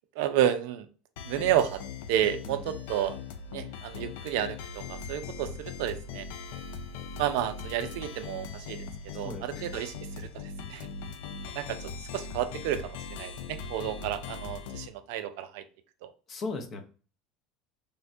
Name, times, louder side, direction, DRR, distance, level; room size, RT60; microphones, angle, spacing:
voice 1, 0.2-0.9 1.2-1.8 2.1-3.2 3.5-6.3 7.2-8.9 9.1-10.3 10.7-10.9 11.6-11.8 12.1-15.6 16.0-16.1, right 11 dB, 70° right, 10 dB, 0.3 m, -31 dB
sound 1, 1.2-14.9, left 5 dB, 75° left, 0.3 m, -40 dB
voice 2, 9.2-9.6 16.3-16.9, left 3 dB, 45° left, 5 dB, 0.7 m, -37 dB
3.2 x 2.1 x 2.5 m, 0.38 s
hypercardioid pair, 80°, 0 cm